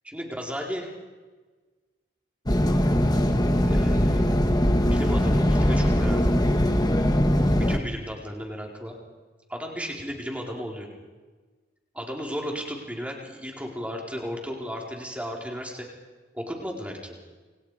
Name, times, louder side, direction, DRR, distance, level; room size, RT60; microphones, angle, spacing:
voice 1, 0.0-0.9 3.7-4.3 4.9-6.4 7.5-8.9 9.5-10.9 11.9-15.9 16.3-17.1, equal, 5° right, 0 dB, 4.6 m, -34 dB
sound 1, 2.5-7.8, equal, 20° left, 1.7 m, -21 dB
29.0 x 28.0 x 5.1 m, 1.3 s
head